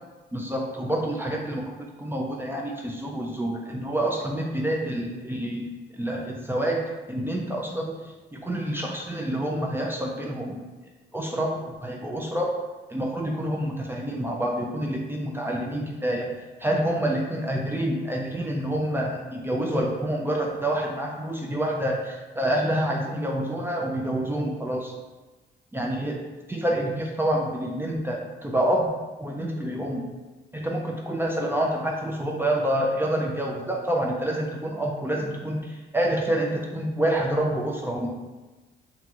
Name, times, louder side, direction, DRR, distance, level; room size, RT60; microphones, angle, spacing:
voice 1, 0.3-5.7 5.9-6.8 7.1-10.6 11.1-12.5 12.9-16.3 16.6-24.9 25.7-26.2 26.5-28.9 29.2-30.0 30.5-38.1, right 1 dB, 10° right, -1 dB, 0.4 m, -27 dB
2.9 x 2.6 x 2.3 m, 1.2 s
cardioid pair, 90°, 20 cm